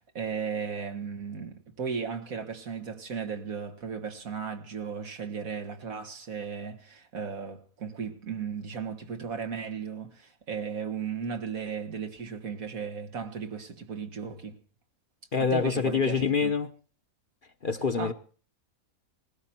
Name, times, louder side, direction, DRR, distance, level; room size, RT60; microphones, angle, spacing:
voice 1, 0.0-14.6 15.4-16.5 18.0-18.1, right 6 dB, 75° right, 2.2 m, -36 dB
voice 2, 15.3-16.7 17.6-18.1, left 5 dB, 45° left, 1.0 m, -26 dB
20.0 x 16.0 x 4.4 m
omnidirectional pair, 1.5 m